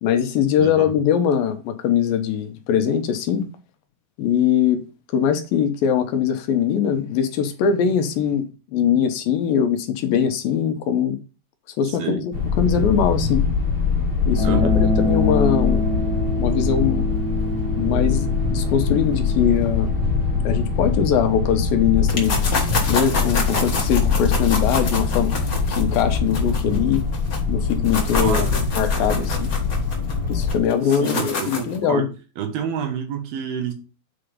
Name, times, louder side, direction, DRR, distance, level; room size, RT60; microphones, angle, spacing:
voice 1, 0.0-3.5 4.2-4.8 5.1-11.2 11.8-13.4 14.3-15.8 16.4-17.1 17.7-19.9 20.4-25.3 25.8-27.0 27.5-28.4 28.7-29.5 30.3-32.1, left 8 dB, 75° left, 2.6 m, -21 dB
voice 2, 0.6-0.9 12.0-12.2 14.4-14.8 28.2-28.6 29.0-29.3 30.9-32.1 32.4-33.7, right 8 dB, 80° right, 3.3 m, -29 dB
sound 1, 12.3-30.6, left 5 dB, 20° right, 1.6 m, -23 dB
sound 2, 14.3-24.4, left 1 dB, 35° right, 1.6 m, -29 dB
sound 3, 22.1-27.4 27.7-31.8, left 3 dB, 40° left, 1.3 m, -28 dB
7.9 x 5.1 x 5.1 m
omnidirectional pair, 4.4 m